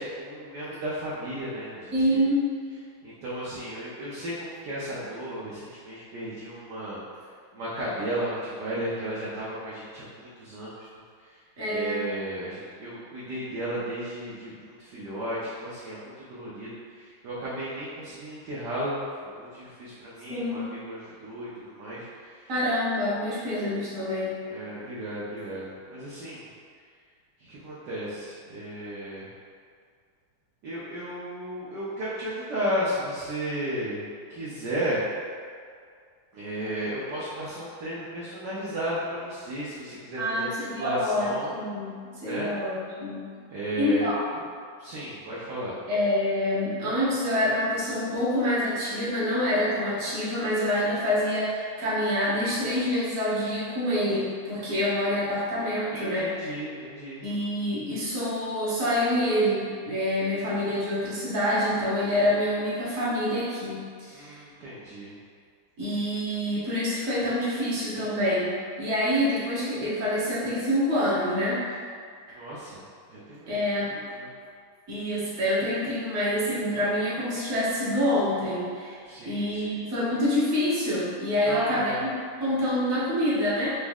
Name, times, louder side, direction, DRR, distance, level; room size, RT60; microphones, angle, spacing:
voice 1, 0.0-2.2 3.0-7.0 7.5-10.9 11.2-11.4 11.7-22.5 24.5-26.4 27.4-29.3 30.6-35.0 36.3-41.5 42.2-42.5 43.5-44.1 44.8-45.8 55.9-57.2 64.1-65.2 72.3-72.8 73.1-74.3 79.0-79.8 81.4-82.0, right 1 dB, 65° right, -9 dB, 1.2 m, -34 dB
voice 2, 1.9-2.5 11.6-12.0 20.3-20.7 22.5-24.3 40.2-41.9 42.2-43.2 43.8-44.2 45.9-56.3 57.2-64.3 65.8-68.5 68.8-71.6 73.5-73.9 74.9-79.0 79.2-82.1 82.4-83.8, left 1 dB, 45° right, -8 dB, 1.3 m, -26 dB
4.1 x 3.0 x 3.5 m, 2.1 s
omnidirectional pair, 2.4 m